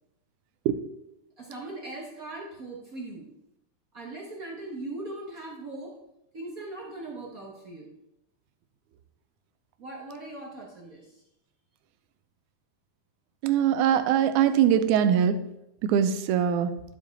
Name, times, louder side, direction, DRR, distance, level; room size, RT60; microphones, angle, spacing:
voice 1, 1.4-3.3 3.9-6.0 6.3-7.9 9.8-11.2, right 2 dB, 65° right, -2 dB, 0.8 m, -39 dB
voice 2, 13.4-15.3 15.9-16.7, right 9 dB, 80° right, 9 dB, 2.0 m, -22 dB
12.0 x 5.0 x 4.1 m, 0.86 s
omnidirectional pair, 3.5 m